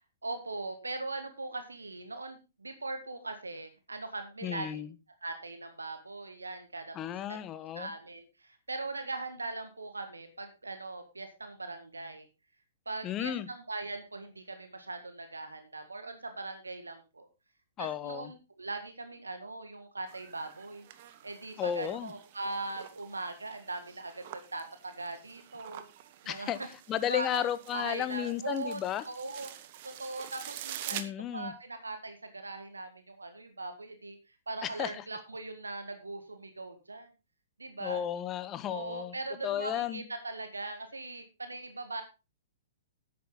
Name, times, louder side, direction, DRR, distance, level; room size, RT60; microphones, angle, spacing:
voice 1, 0.2-4.8 5.2-7.0 7.3-7.4 7.7-12.3 12.8-17.3 17.8-20.9 21.2-25.9 26.2-26.5 27.1-27.4 27.7-29.5 29.8-37.1 37.6-38.0 38.7-42.0, right 3 dB, 80° right, 1.6 m, -40 dB
voice 2, 4.4-4.9 6.9-7.9 13.0-13.5 17.8-18.3 21.6-22.1 26.3-26.6 26.9-29.0 30.9-31.5 34.6-35.0 37.8-39.2 39.4-40.0, left 10 dB, 25° left, 1.0 m, -33 dB
sound 1, 20.1-31.0, right 12 dB, 45° right, 1.1 m, -47 dB
10.5 x 8.6 x 3.8 m
figure-of-eight pair, 115°, 0 cm